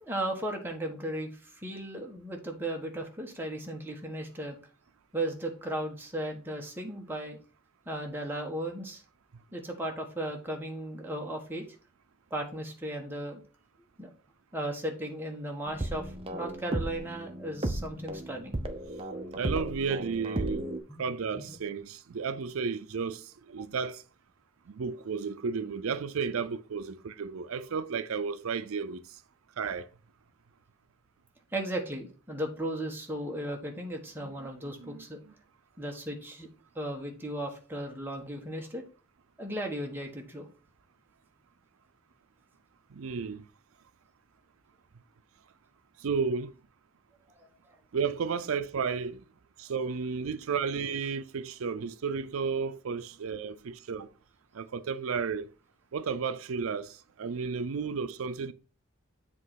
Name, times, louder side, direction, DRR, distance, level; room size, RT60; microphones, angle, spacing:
voice 1, 0.0-4.6 5.1-7.4 7.9-9.0 9.5-11.7 12.3-13.4 14.0-14.1 14.5-18.5 20.9-21.0 21.4-21.5 31.5-35.2 35.8-36.5 36.7-38.8 39.4-40.5 47.4-47.5, right 1 dB, 10° right, 1.2 m, -36 dB
sound 1, 15.7-20.8, right 1 dB, 25° right, 0.7 m, -35 dB
voice 2, 19.3-24.0 24.7-29.2 29.6-29.9 34.2-34.4 34.8-35.3 42.9-43.4 46.0-46.5 47.9-49.2 49.6-54.1 54.5-55.5 55.9-58.5, right 5 dB, 85° right, 0.5 m, -33 dB
7.6 x 3.2 x 5.7 m
head